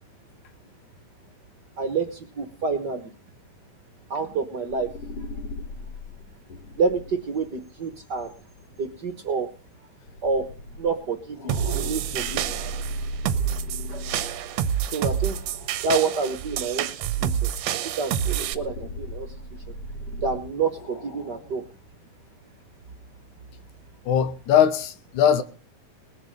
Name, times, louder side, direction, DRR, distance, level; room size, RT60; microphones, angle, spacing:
voice 1, 1.8-3.1 4.1-4.9 6.8-8.3 8.8-9.5 10.2-10.4 10.8-12.5 13.9-14.0 14.8-15.4 15.8-19.3 20.2-21.6, right 4 dB, 50° right, 1.4 m, -28 dB
sound 1, 4.7-8.9 10.1-16.1 16.6-16.7 18.2-21.7, left 1 dB, 55° left, 2.8 m, -38 dB
sound 2, 11.5-18.5, right 10 dB, 70° right, 1.9 m, -28 dB
voice 2, 24.1-25.4, left 9 dB, 90° left, 2.6 m, -20 dB
20.0 x 7.4 x 6.5 m
omnidirectional pair, 3.4 m